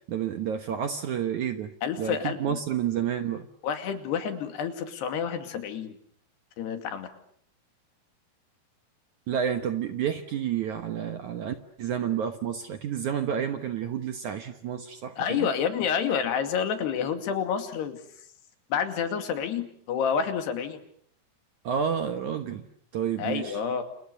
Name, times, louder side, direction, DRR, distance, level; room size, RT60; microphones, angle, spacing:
voice 1, 0.1-1.7 2.0-3.5 9.3-15.5 21.6-22.6 22.9-23.6, right 8 dB, 65° right, 8 dB, 2.1 m, -30 dB
voice 2, 1.8-2.6 3.6-5.9 6.6-7.1 15.2-18.0 18.7-20.8 23.2-23.8, left 7 dB, 75° left, 8 dB, 4.5 m, -29 dB
29.5 x 28.5 x 6.8 m, 0.64 s
omnidirectional pair, 4.8 m